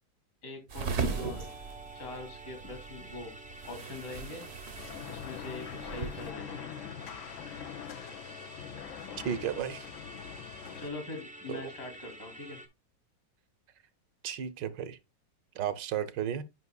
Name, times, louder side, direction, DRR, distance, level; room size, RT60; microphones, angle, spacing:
voice 1, 0.4-1.5 1.9-3.3 3.6-4.4 5.1-6.6 10.8-12.6, left 3 dB, 65° left, 3.4 m, -43 dB
sound 1, 0.7-6.3, right 5 dB, 50° right, 0.8 m, -38 dB
Musical instrument, 1.0-12.7, right 1 dB, 10° right, 0.4 m, -49 dB
sound 2, 4.8-10.9, left 9 dB, 85° left, 0.6 m, -43 dB
voice 2, 9.2-9.9 11.5-11.7 14.2-15.0 15.5-16.4, right 9 dB, 75° right, 1.4 m, -33 dB
9.6 x 5.5 x 2.2 m
omnidirectional pair, 2.0 m